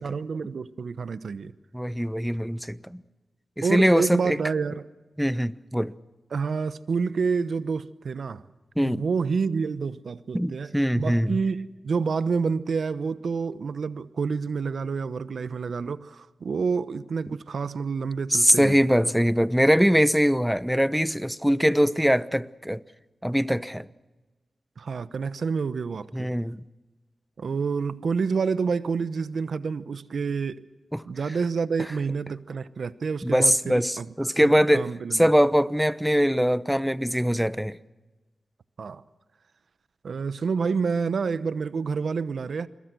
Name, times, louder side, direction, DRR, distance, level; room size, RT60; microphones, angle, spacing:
voice 1, 0.0-1.5 3.6-4.9 6.3-8.4 8.8-18.8 24.8-26.3 27.4-30.6 31.1-35.3 38.8-39.0 40.0-42.7, right 5 dB, 75° right, 1.0 m, -28 dB
voice 2, 1.7-3.0 3.6-4.4 5.2-5.9 8.8-9.0 10.3-11.4 18.3-22.8 23.2-23.9 26.1-26.6 30.9-31.0 33.2-37.8, equal, ahead, 0.9 m, -22 dB
28.5 x 22.0 x 6.2 m
cardioid pair, 45°, 0 cm